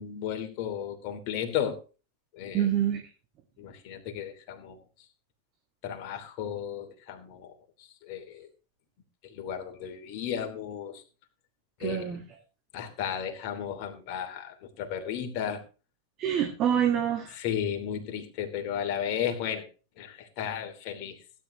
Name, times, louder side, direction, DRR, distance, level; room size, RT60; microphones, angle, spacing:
voice 1, 0.0-1.8 2.3-2.7 3.6-4.8 5.8-7.5 8.0-8.5 9.2-11.0 11.8-12.1 12.7-15.6 17.3-19.7 20.0-21.2, left 9 dB, 45° left, 4 dB, 2.9 m, -34 dB
voice 2, 2.5-3.0 11.8-12.2 16.2-17.3, right 9 dB, 35° right, 4 dB, 2.0 m, -26 dB
17.0 x 10.0 x 3.2 m, 0.34 s
figure-of-eight pair, 90°, 0 cm